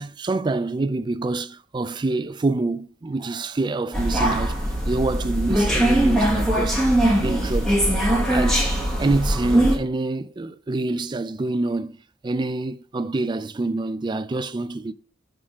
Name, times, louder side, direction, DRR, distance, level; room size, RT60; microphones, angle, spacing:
voice 1, 0.0-6.8 7.2-7.8 8.3-8.7 9.0-12.0 12.2-14.9, right 2 dB, 25° right, 0.3 m, -26 dB
sound 1, 3.9-9.8, right 1 dB, 5° left, 1.4 m, -21 dB
6.2 x 3.7 x 6.0 m
head